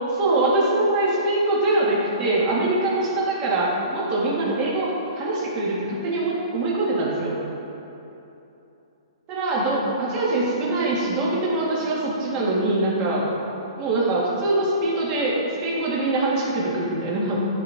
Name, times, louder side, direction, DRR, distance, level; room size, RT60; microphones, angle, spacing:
voice 1, 0.1-7.4 9.3-13.2 13.8-17.4, right 2 dB, 25° right, -5 dB, 1.7 m, -23 dB
12.5 x 4.3 x 3.5 m, 2.9 s
hypercardioid pair, 155°, 3 cm